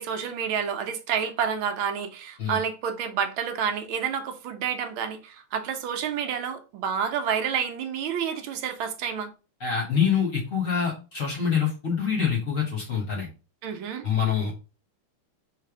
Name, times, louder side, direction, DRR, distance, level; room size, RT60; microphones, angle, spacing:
voice 1, 0.0-9.3 13.6-14.0, right 7 dB, 75° right, 1.4 m, -29 dB
voice 2, 9.6-13.3 14.0-14.5, left 7 dB, 50° left, 1.1 m, -25 dB
3.3 x 3.3 x 4.8 m
omnidirectional pair, 2.4 m